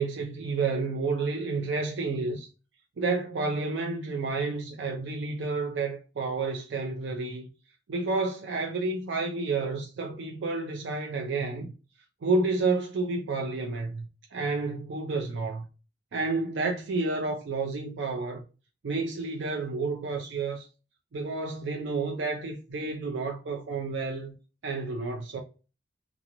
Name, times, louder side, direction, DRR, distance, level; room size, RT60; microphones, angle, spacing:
voice 1, 0.0-2.5 3.0-7.5 7.9-11.7 12.2-15.7 16.1-18.4 18.8-20.7 21.1-24.3 24.6-25.4, right 3 dB, 70° right, 0.4 m, -30 dB
2.4 x 2.0 x 2.8 m
head